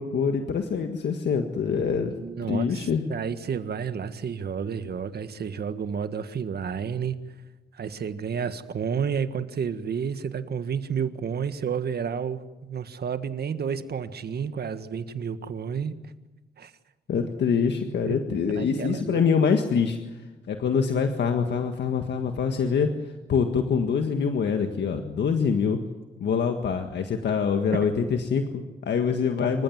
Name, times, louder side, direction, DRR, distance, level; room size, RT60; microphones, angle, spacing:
voice 1, 0.0-2.1 2.5-3.0 17.1-20.0 20.5-22.9 23.3-25.8 26.2-29.6, left 6 dB, 70° left, 5 dB, 1.7 m, -25 dB
voice 2, 2.1-7.2 7.7-15.9 16.6-16.7 18.0-19.2, right 7 dB, 60° right, 11 dB, 1.6 m, -31 dB
26.5 x 15.0 x 9.5 m, 1.1 s
cardioid pair, 85°, 18 cm